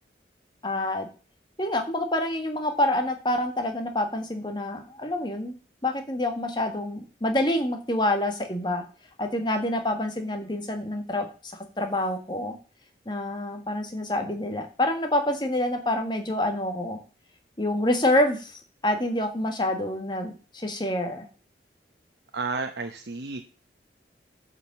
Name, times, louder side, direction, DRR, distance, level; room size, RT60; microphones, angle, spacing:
voice 1, 0.6-1.1 1.6-5.5 5.8-8.8 9.2-11.3 11.8-12.5 13.0-17.0 17.6-21.3, left 1 dB, 25° left, 5 dB, 1.7 m, -27 dB
voice 2, 22.3-23.4, right 4 dB, 75° right, 5 dB, 0.8 m, -31 dB
8.9 x 5.1 x 7.3 m, 0.36 s
head